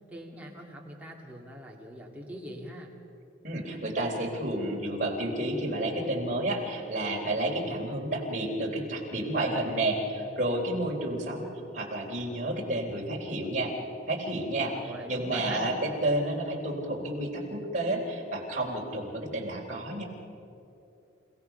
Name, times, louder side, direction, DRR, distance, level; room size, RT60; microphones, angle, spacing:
voice 1, 0.1-2.9 14.7-15.8, right 1 dB, 10° right, -2 dB, 2.4 m, -42 dB
voice 2, 3.4-11.5 11.7-13.7 14.1-20.0, right 1 dB, 40° right, -1 dB, 3.5 m, -30 dB
29.0 x 17.0 x 5.9 m, 2.8 s
head